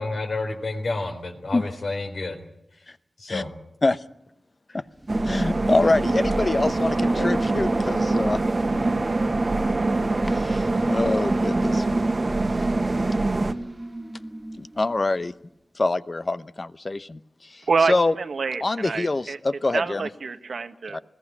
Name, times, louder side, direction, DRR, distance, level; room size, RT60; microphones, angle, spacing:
voice 1, 0.0-2.4 3.2-3.5 7.2-7.3, left 2 dB, 70° left, 3 dB, 3.7 m, -30 dB
sound 1, 4.9-15.3, right 1 dB, 20° right, 1.6 m, -34 dB
sound 2, 5.1-13.5, right 2 dB, 45° right, 1.3 m, -24 dB
voice 2, 5.2-8.8 10.0-12.0 14.6-15.3 15.8-18.1 18.6-20.1 20.9-21.0, left 2 dB, 40° left, 14 dB, 0.9 m, -25 dB
voice 3, 17.7-19.4 19.7-21.0, right 4 dB, 85° right, 9 dB, 1.4 m, -26 dB
20.5 x 17.0 x 9.9 m, 0.80 s
wide cardioid pair, 80°, 0 cm